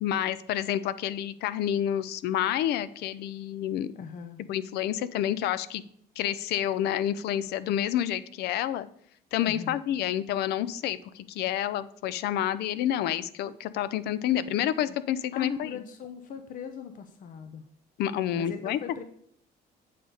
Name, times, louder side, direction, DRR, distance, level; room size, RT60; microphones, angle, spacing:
voice 1, 0.0-3.9 4.5-5.8 6.2-8.9 9.3-15.7 18.0-18.8, left 11 dB, 80° left, 16 dB, 0.5 m, -29 dB
voice 2, 3.9-4.4 9.4-9.8 14.9-15.0 15.3-17.6 18.4-19.0, left 6 dB, 50° left, 7 dB, 0.8 m, -39 dB
8.4 x 3.9 x 6.5 m, 0.64 s
cardioid pair, 110°, 17 cm